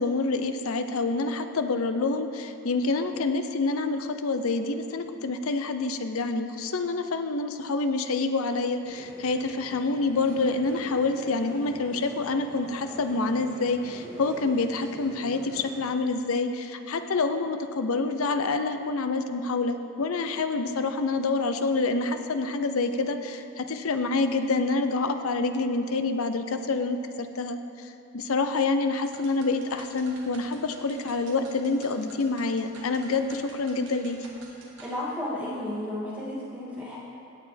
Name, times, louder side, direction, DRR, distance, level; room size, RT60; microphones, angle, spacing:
voice 1, 0.0-34.2, left 3 dB, 75° left, 8 dB, 0.6 m, -27 dB
sound 1, 8.8-15.9, equal, 25° left, 1.7 m, -45 dB
sound 2, 29.0-35.0, right 2 dB, 60° right, 1.5 m, -50 dB
voice 2, 34.8-37.0, left 1 dB, 10° right, -10 dB, 2.5 m, -33 dB
17.0 x 6.8 x 3.4 m, 2.7 s
head